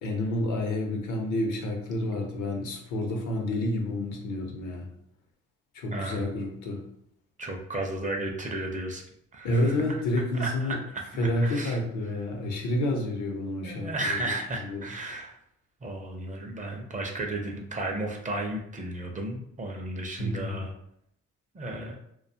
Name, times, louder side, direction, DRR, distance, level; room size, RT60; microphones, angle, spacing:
voice 1, 0.0-4.9 5.7-6.8 9.4-10.8 11.2-14.8 20.2-20.6, left 1 dB, 80° left, 2 dB, 0.7 m, -29 dB
voice 2, 5.9-6.3 7.4-9.0 9.3-9.7 10.3-11.1 11.4-11.8 13.6-15.4 15.8-20.7 21.5-22.0, right 2 dB, 25° right, 2 dB, 0.5 m, -34 dB
2.3 x 2.2 x 2.7 m, 0.75 s
cardioid pair, 90°, 30 cm